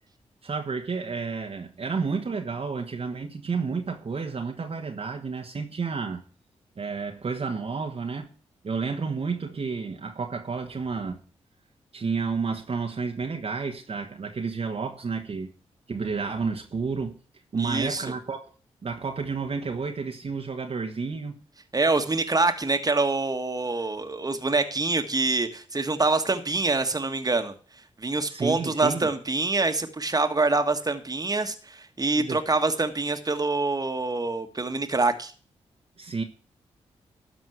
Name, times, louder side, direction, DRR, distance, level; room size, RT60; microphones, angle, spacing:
voice 1, 0.4-6.2 6.8-8.3 8.6-11.2 11.9-15.5 15.9-17.2 17.5-18.5 18.8-21.4 28.3-29.1 32.1-32.4 36.0-36.2, right 5 dB, 50° right, 1.3 m, -31 dB
voice 2, 17.6-18.0 21.7-27.5 28.0-35.3, right 3 dB, 30° right, 1.6 m, -25 dB
12.5 x 4.3 x 7.9 m
supercardioid pair, 45°, 13 cm